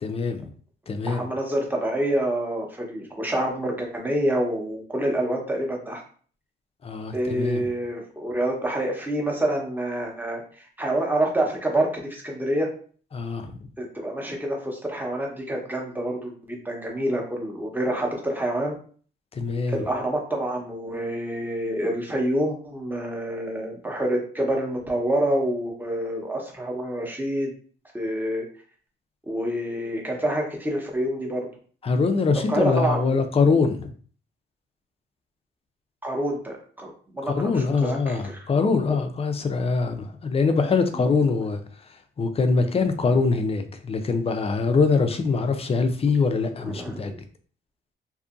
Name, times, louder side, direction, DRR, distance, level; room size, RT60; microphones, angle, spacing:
voice 1, 0.0-0.5 0.9-1.2 6.8-7.6 13.1-13.5 19.3-19.8 31.8-33.9 37.2-41.6 42.2-47.1, left 4 dB, 30° left, 8 dB, 0.4 m, -23 dB
voice 2, 1.0-6.0 7.1-12.7 13.8-18.7 19.7-27.5 27.9-28.5 29.3-31.5 32.5-33.2 36.0-38.4 38.9-39.0 46.6-47.2, right 1 dB, 10° right, 0 dB, 0.9 m, -27 dB
2.6 x 2.5 x 2.5 m, 0.43 s
cardioid pair, 90°, 20 cm